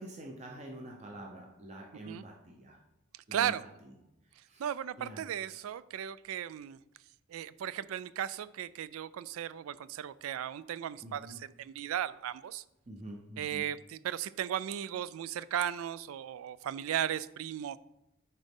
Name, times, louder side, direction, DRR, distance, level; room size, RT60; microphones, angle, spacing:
voice 1, 0.0-2.8 3.3-3.6 4.5-4.7 5.0-5.3 11.0-11.4 12.9-13.6, right 1 dB, 30° right, 0 dB, 0.8 m, -46 dB
voice 2, 3.1-3.6 4.6-6.8 7.3-12.6 13.4-17.8, right 10 dB, 90° right, 17 dB, 0.3 m, -36 dB
10.0 x 3.9 x 3.6 m, 0.85 s
head